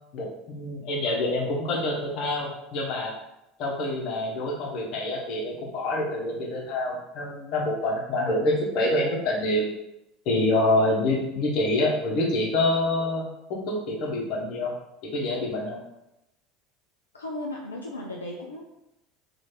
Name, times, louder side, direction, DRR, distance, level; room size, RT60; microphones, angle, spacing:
voice 1, 0.1-3.1 3.6-9.7 10.2-13.2 13.5-14.7 15.0-15.8, left 1 dB, 55° left, -2 dB, 1.2 m, -26 dB
voice 2, 17.1-18.7, left 1 dB, 90° left, -2 dB, 0.4 m, -35 dB
3.1 x 2.7 x 4.3 m, 0.87 s
hypercardioid pair, 70°, 0 cm